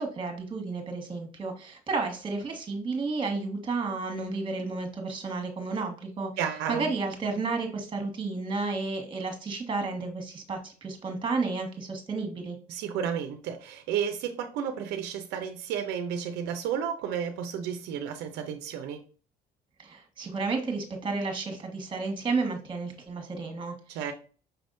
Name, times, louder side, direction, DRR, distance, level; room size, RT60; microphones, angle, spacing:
voice 1, 0.0-6.3 6.7-12.6 19.8-24.1, right 3 dB, 30° right, 1.5 m, -32 dB
voice 2, 6.4-6.9 12.7-19.0 23.9-24.1, right 8 dB, 90° right, 0.6 m, -32 dB
5.8 x 3.5 x 2.6 m
cardioid pair, 110°, 17 cm